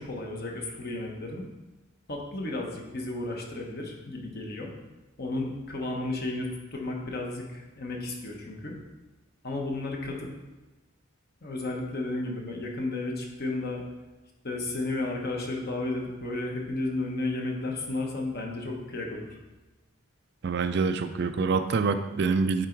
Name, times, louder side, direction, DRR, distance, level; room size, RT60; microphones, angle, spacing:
voice 1, 0.0-1.4 2.1-4.7 5.2-8.8 9.4-10.3 11.4-13.8 14.4-19.4, left 2 dB, 45° left, 0 dB, 1.2 m, -33 dB
voice 2, 20.4-22.7, right 4 dB, 50° right, 9 dB, 0.4 m, -26 dB
9.0 x 3.9 x 4.6 m, 1.1 s
head